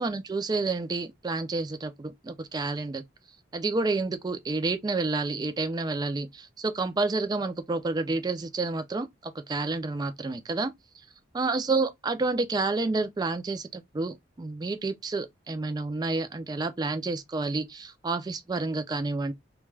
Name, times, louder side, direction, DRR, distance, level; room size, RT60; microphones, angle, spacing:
voice 1, 0.0-3.0 3.5-10.7 11.3-19.3, right 3 dB, 20° right, 0.3 m, -29 dB
2.2 x 2.2 x 3.2 m
head